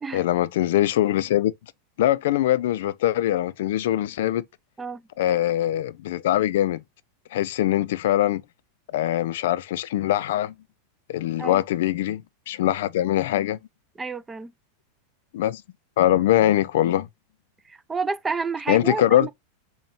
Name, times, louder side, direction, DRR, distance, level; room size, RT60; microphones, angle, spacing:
voice 1, 0.1-1.5 2.0-4.4 5.2-6.8 7.3-8.4 8.9-10.5 11.1-12.2 12.5-13.6 15.3-15.6 16.0-17.1 18.7-19.3, left 13 dB, 75° left, 0.3 m, -22 dB
voice 2, 14.0-14.5 17.7-19.3, right 4 dB, 15° right, 0.3 m, -29 dB
5.2 x 2.2 x 2.9 m
supercardioid pair, 130°, 0 cm